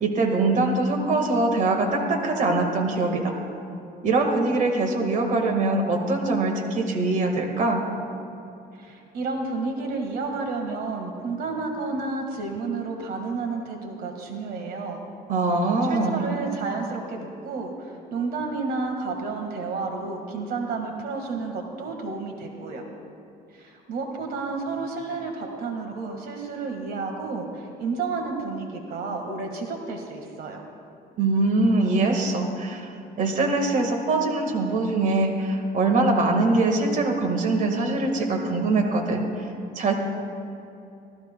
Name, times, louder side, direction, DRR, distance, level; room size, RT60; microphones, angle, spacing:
voice 1, 0.0-3.3 4.0-7.8 15.3-16.2 31.2-32.9 33.2-39.9, right 2 dB, 50° right, 3 dB, 1.6 m, -23 dB
voice 2, 8.8-15.0 15.8-22.8 23.5-30.6, right 4 dB, 65° right, 3 dB, 1.7 m, -31 dB
25.5 x 15.5 x 2.2 m, 2.7 s
cardioid pair, 110°, 17 cm